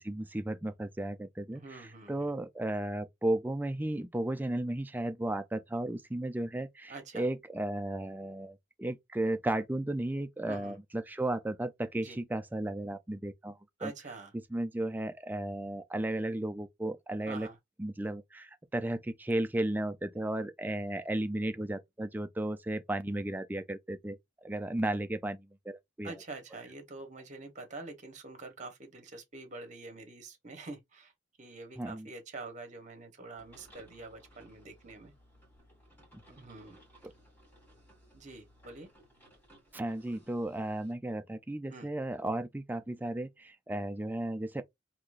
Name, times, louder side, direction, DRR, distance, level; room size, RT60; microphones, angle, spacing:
voice 1, 0.0-13.9 14.3-17.5 17.8-26.2 31.8-32.1 36.1-36.2 39.7-44.6, right 1 dB, 10° right, 0.3 m, -34 dB
voice 2, 1.5-2.3 6.9-7.3 10.4-10.8 11.9-12.2 13.8-14.3 17.3-17.6 26.0-31.1 31.4-35.1 36.4-36.8 38.1-38.9 41.7-41.9, right 3 dB, 40° right, 0.9 m, -46 dB
sound 1, 33.3-40.9, equal, 10° left, 2.0 m, -60 dB
3.7 x 2.8 x 2.4 m
head